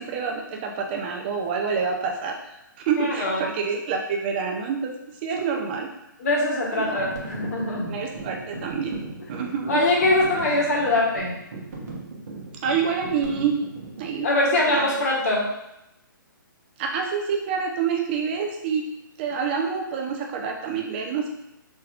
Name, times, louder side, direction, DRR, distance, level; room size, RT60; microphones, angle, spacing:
voice 1, 0.0-2.4 2.9-4.9 5.2-5.9 6.7-7.0 7.9-9.0 9.3-9.8 12.6-13.6 14.0-14.3 14.6-15.0 16.8-18.9 19.2-21.3, right 6 dB, 30° right, 2 dB, 0.7 m, -27 dB
voice 2, 3.0-3.4 6.2-7.9 9.7-11.4 14.2-15.5, left 2 dB, 45° left, -3 dB, 1.5 m, -22 dB
sound 1, 6.8-14.2, right 3 dB, 45° right, 1.2 m, -38 dB
5.5 x 3.8 x 2.5 m, 0.88 s
figure-of-eight pair, 130°, 11 cm